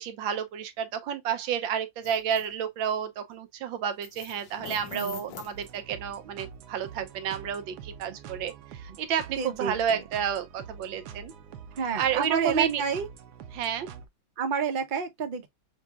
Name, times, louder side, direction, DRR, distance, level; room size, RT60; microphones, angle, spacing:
voice 1, 0.0-11.3 12.0-12.8 13.5-13.9, right 8 dB, 90° right, 1.5 m, -30 dB
sound 1, 2.0-2.5 4.0-6.1 6.8-7.0 7.5-7.6, left 10 dB, 75° left, 1.4 m, -44 dB
voice 2, 4.9-5.2 8.1-8.2 9.4-10.0 11.7-13.1 14.4-15.5, right 6 dB, 45° right, 0.6 m, -30 dB
sound 2, 5.5-14.1, right 7 dB, 70° right, 1.1 m, -46 dB
6.5 x 2.8 x 2.4 m
omnidirectional pair, 2.1 m